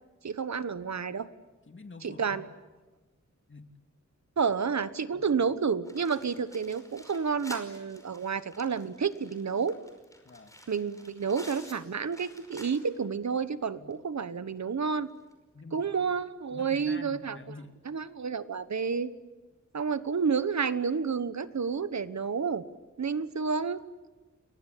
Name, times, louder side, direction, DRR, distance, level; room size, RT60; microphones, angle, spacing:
voice 1, 0.2-1.3 2.0-2.4 4.4-9.8 10.7-15.1 15.7-17.4 17.9-19.1 19.7-22.6 23.0-23.8, right 5 dB, 70° right, 14 dB, 1.2 m, -30 dB
voice 2, 1.7-2.5 3.5-3.7 5.1-5.4 10.2-10.5 13.8-13.9 15.5-16.1 16.5-17.8, left 3 dB, 40° left, 6 dB, 2.6 m, -47 dB
sound 1, 5.8-13.1 13.4-13.5 13.9-14.0 15.2-15.3, left 1 dB, 10° left, 5.4 m, -51 dB
30.0 x 23.0 x 8.5 m, 1.2 s
wide cardioid pair, 105°, 29 cm